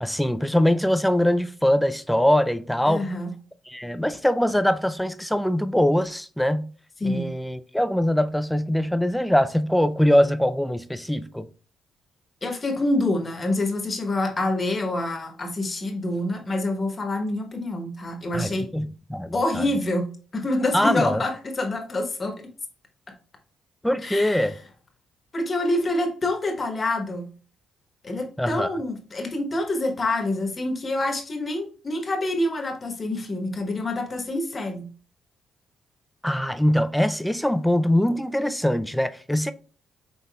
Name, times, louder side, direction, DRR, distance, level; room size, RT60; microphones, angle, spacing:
voice 1, 0.0-3.1 3.7-6.7 7.0-11.5 18.3-19.7 20.7-21.2 23.8-24.6 28.4-28.7 36.2-39.5, left 1 dB, 5° left, 0.4 m, -22 dB
voice 2, 2.9-3.3 7.0-7.3 12.4-18.7 19.3-22.3 24.0-24.5 25.3-27.3 28.0-34.9, left 2 dB, 30° left, 1.1 m, -26 dB
5.6 x 3.9 x 2.3 m
cardioid pair, 90°, 0 cm